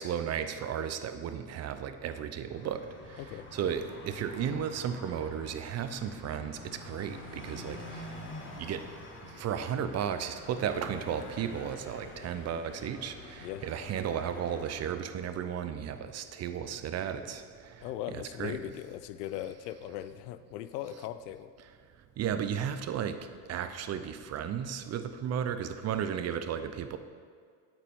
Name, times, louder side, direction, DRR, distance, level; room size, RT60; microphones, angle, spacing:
voice 1, 0.0-3.2 3.5-8.2 8.6-8.8 9.2-17.9 18.4-18.6 22.2-23.2 23.5-27.0, right 8 dB, 35° right, 10 dB, 0.6 m, -34 dB
sound 1, 2.5-14.9, left 2 dB, 25° left, 1.7 m, -47 dB
voice 2, 3.2-3.7 13.4-13.6 17.8-21.5, left 12 dB, 80° left, 12 dB, 0.6 m, -39 dB
8.6 x 8.1 x 3.6 m, 2.1 s
supercardioid pair, 95°, 47 cm